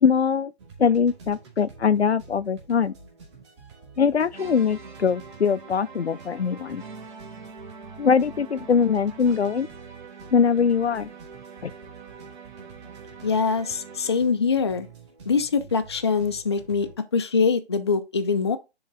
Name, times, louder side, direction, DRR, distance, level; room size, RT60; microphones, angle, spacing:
voice 1, 0.0-0.5 0.8-2.9 4.0-6.8 8.0-9.7 10.3-11.1 11.6-11.7, left 6 dB, 75° left, 0.6 m, -22 dB
sound 1, 0.6-16.9, right 4 dB, 25° right, 2.3 m, -48 dB
sound 2, 4.3-14.4, right 5 dB, 45° right, 1.7 m, -44 dB
voice 2, 13.2-14.9 15.3-18.6, left 5 dB, 25° left, 0.6 m, -23 dB
10.0 x 3.9 x 3.8 m
figure-of-eight pair, 155°, 33 cm